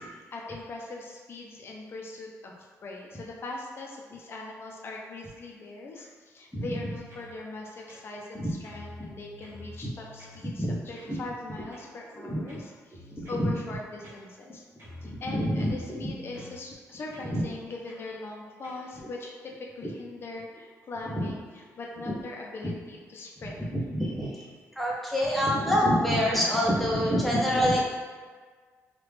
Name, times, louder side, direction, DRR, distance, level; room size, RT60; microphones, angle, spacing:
voice 1, 0.3-2.6 2.8-14.6 15.0-23.6 25.3-25.4, left 2 dB, 45° left, 0 dB, 0.6 m, -41 dB
sound 1, 6.7-7.3 7.9-8.4 8.6-10.4 11.0-11.2 11.7-12.0 12.5-13.5 14.0-14.5 14.8-16.6 17.1-17.3 17.9-18.1 18.6-18.9, left 1 dB, 50° right, 1.0 m, -48 dB
voice 2, 12.2-12.6 13.4-13.5 15.3-15.7 17.3-17.4 21.2-21.3 23.7-24.3 24.8-27.8, equal, ahead, -4 dB, 0.7 m, -25 dB
3.1 x 2.4 x 3.3 m, 1.6 s
cardioid pair, 125°, 6 cm